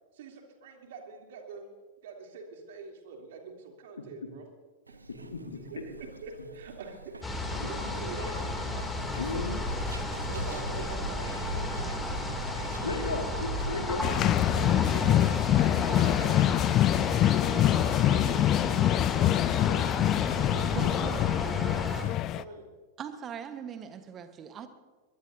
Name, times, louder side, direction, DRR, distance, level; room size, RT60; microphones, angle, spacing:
voice 1, 0.1-1.7 2.0-4.5 4.9-8.8 9.9-13.4 14.6-16.6 16.9-20.0 20.5-21.5 22.2-22.7, right 4 dB, 55° right, 3.1 m, -46 dB
Zipper (clothing), 4.9-16.6, right 3 dB, 80° right, 1.0 m, -41 dB
voice 2, 5.1-5.6 9.2-9.6 12.8-14.1, left 3 dB, 70° left, 1.9 m, -34 dB
sound 1, 7.2-22.0, left 2 dB, 10° left, 2.8 m, -34 dB
sound 2, 14.0-22.4, left 13 dB, 35° left, 0.5 m, -25 dB
voice 3, 20.7-21.8 23.0-24.7, right 8 dB, 25° right, 1.3 m, -41 dB
22.5 x 22.5 x 2.8 m
figure-of-eight pair, 90°, 0 cm